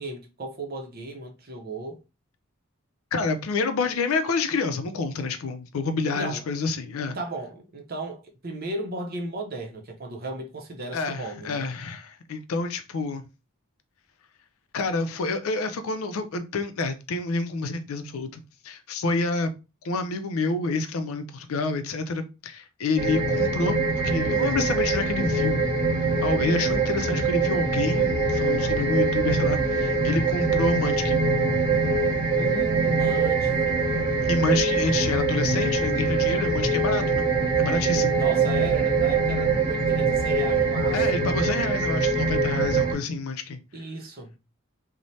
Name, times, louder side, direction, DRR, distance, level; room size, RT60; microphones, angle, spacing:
voice 1, 0.0-2.0 6.1-6.4 7.1-11.7 32.3-34.3 38.1-41.4 43.7-44.4, right 2 dB, 45° right, 0.6 m, -35 dB
voice 2, 3.1-7.2 10.9-13.2 14.7-19.5 19.8-25.6 26.2-31.2 34.3-37.3 37.6-38.2 40.9-43.6, left 3 dB, 80° left, 0.4 m, -28 dB
sound 1, 23.0-42.9, right 3 dB, 25° right, 1.0 m, -23 dB
3.1 x 2.1 x 2.6 m
head